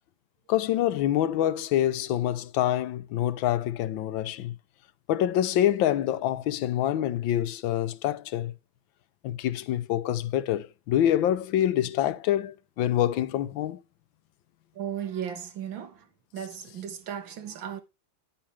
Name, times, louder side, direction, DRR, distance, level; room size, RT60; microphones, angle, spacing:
voice 1, 0.5-4.5 5.1-8.5 9.2-13.8, left 12 dB, 85° left, 1.5 m, -26 dB
voice 2, 14.8-16.1 16.3-17.8, right 9 dB, 85° right, 2.1 m, -35 dB
10.0 x 8.7 x 3.2 m
omnidirectional pair, 2.1 m